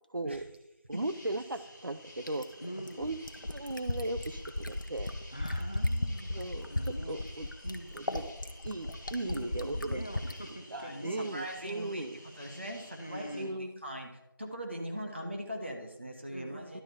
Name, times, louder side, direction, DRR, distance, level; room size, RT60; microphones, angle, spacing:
voice 1, 0.1-0.5 0.9-2.5 3.0-3.2 3.5-5.1 6.3-7.5 7.9-8.3 8.6-10.0 10.7-12.2 13.3-13.8 16.7-16.8, right 2 dB, 65° right, 12 dB, 0.7 m, -37 dB
sound 1, 0.9-13.4, left 1 dB, 5° left, 1.1 m, -53 dB
Fill (with liquid), 2.3-10.4 11.7-11.8, left 1 dB, 60° left, 0.9 m, -35 dB
voice 2, 2.6-3.1 5.3-7.2 7.6-8.2 9.2-11.3 13.0-13.6 16.3-16.7, equal, 25° left, 6 dB, 0.6 m, -44 dB
voice 3, 10.7-12.1 12.4-14.1 14.4-16.8, equal, 30° right, 1 dB, 1.0 m, -40 dB
11.5 x 4.0 x 7.0 m, 0.96 s
figure-of-eight pair, 175°, 12 cm